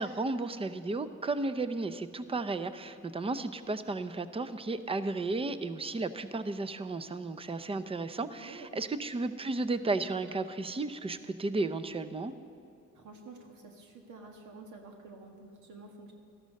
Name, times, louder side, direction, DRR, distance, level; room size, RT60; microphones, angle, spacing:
voice 1, 0.0-12.3, right 3 dB, 20° right, 12 dB, 0.6 m, -34 dB
voice 2, 12.9-16.1, right 3 dB, 75° right, 2 dB, 1.6 m, -49 dB
13.5 x 13.0 x 5.4 m, 2.6 s
cardioid pair, 90°, 30 cm